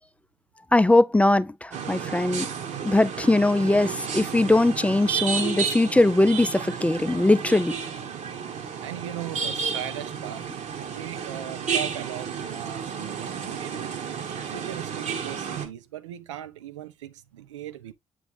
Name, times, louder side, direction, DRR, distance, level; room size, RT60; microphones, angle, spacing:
voice 1, 0.7-2.5 2.8-7.8, left 2 dB, 10° left, 0.5 m, -21 dB
sound 1, 1.7-15.7, right 7 dB, 50° right, 1.3 m, -32 dB
voice 2, 8.8-14.0 14.5-17.9, right 11 dB, 75° right, 0.5 m, -38 dB
8.0 x 3.3 x 3.6 m
figure-of-eight pair, 45°, 16 cm